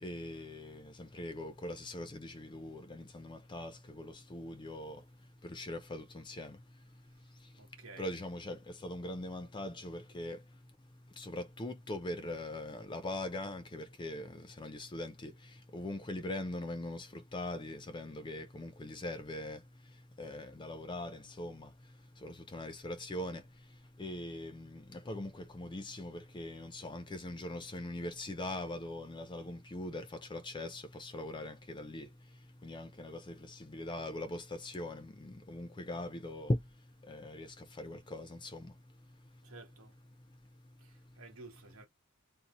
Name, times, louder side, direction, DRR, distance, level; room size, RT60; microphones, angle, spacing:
voice 1, 0.0-5.0 5.4-6.6 8.0-10.4 11.2-15.3 15.7-19.6 20.2-21.7 22.2-23.4 24.0-32.1 32.6-36.6 37.1-38.7, left 1 dB, 25° left, 0.4 m, -41 dB
voice 2, 7.6-8.2 39.4-40.0 40.8-41.9, right 3 dB, 90° right, 1.1 m, -53 dB
2.6 x 2.0 x 2.9 m
head